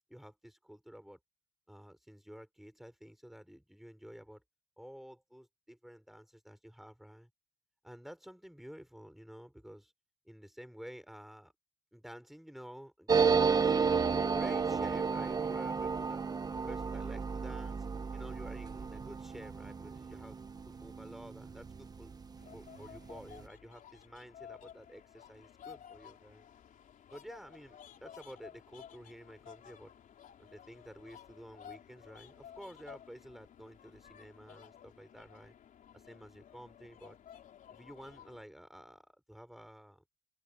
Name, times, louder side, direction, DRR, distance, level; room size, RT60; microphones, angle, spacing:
voice 1, 0.1-1.2 1.7-4.4 4.8-7.3 7.8-9.9 10.3-11.5 11.9-13.2 13.5-16.2 16.7-17.9 18.1-20.4 20.7-22.2 22.5-26.5 27.1-29.9 30.4-35.5 35.9-37.2 37.7-40.0, equal, ahead, 5.5 m, -51 dB
sound 1, 13.1-22.2 22.5-22.6 22.8-23.4, right 5 dB, 25° right, 1.1 m, -32 dB
sound 2, 22.4-38.4, left 9 dB, 50° left, 4.0 m, -55 dB
open air
cardioid pair, 110°, 17 cm